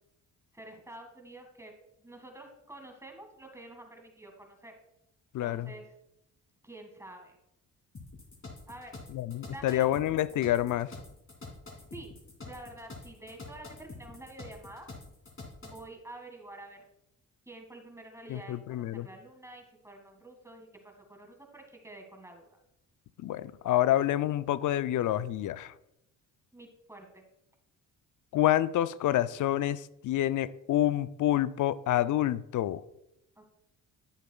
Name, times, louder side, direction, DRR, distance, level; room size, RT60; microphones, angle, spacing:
voice 1, 0.5-1.7 2.0-4.7 5.4-5.9 6.6-7.4 8.7-9.0 9.5-9.9 11.9-12.2 12.4-14.9 15.6-16.8 17.5-22.6 26.5-27.2 33.4-33.5, right 1 dB, 10° right, 3 dB, 1.8 m, -48 dB
voice 2, 5.3-5.7 9.1-10.9 18.3-19.1 23.2-25.7 28.3-32.8, left 13 dB, 60° left, 16 dB, 0.5 m, -28 dB
sound 1, 7.9-15.9, left 3 dB, 35° left, 2.7 m, -47 dB
10.5 x 7.7 x 2.3 m, 0.84 s
supercardioid pair, 70°, 35 cm